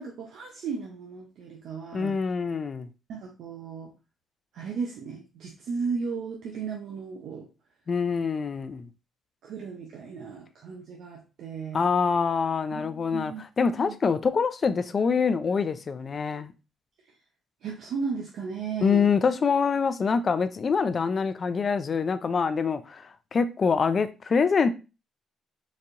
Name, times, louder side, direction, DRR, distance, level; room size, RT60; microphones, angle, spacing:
voice 1, 0.0-2.2 3.1-3.9 4.5-7.5 9.4-11.8 12.7-13.4 13.9-14.0 17.6-19.1, right 5 dB, 75° right, 0.6 m, -35 dB
voice 2, 1.9-2.9 7.9-8.9 11.7-16.5 18.8-23.0 23.3-24.7, left 5 dB, 45° left, 0.4 m, -25 dB
4.1 x 2.7 x 2.5 m
cardioid pair, 90°, 0 cm